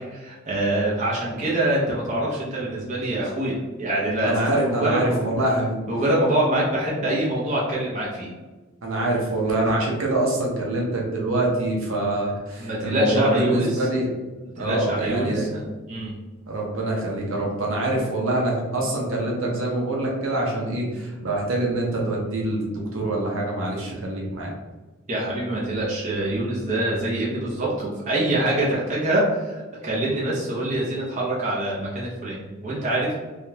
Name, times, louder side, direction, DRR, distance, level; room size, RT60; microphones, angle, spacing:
voice 1, 0.1-5.2 5.9-8.3 12.6-13.9 14.6-15.6 15.9-16.2 25.1-33.2, right 1 dB, 35° right, -5 dB, 0.7 m, -25 dB
voice 2, 4.2-5.8 8.8-14.1 14.6-15.5 16.5-24.5, right 1 dB, 70° right, -2 dB, 0.8 m, -25 dB
3.5 x 2.3 x 2.8 m, 1.2 s
head